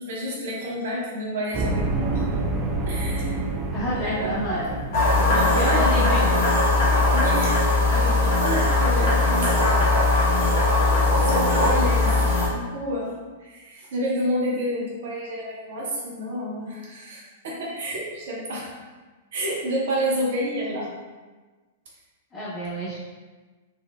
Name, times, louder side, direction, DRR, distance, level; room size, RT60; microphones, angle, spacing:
voice 1, 0.0-2.2 2.8-3.4 3.9-4.7 5.0-6.1 7.1-9.5 10.2-10.4 10.9-12.2 12.4-18.8 19.3-20.9, equal, 55° right, -4 dB, 0.8 m, -30 dB
sound 1, 1.5-6.3, right 2 dB, 20° right, 0.3 m, -28 dB
voice 2, 3.7-4.7 5.5-6.2 22.3-23.0, equal, 20° left, -10 dB, 0.7 m, -28 dB
sound 2, 4.9-12.5, left 2 dB, 55° left, 0.9 m, -20 dB
4.2 x 2.0 x 2.3 m, 1.3 s
figure-of-eight pair, 105°, 0 cm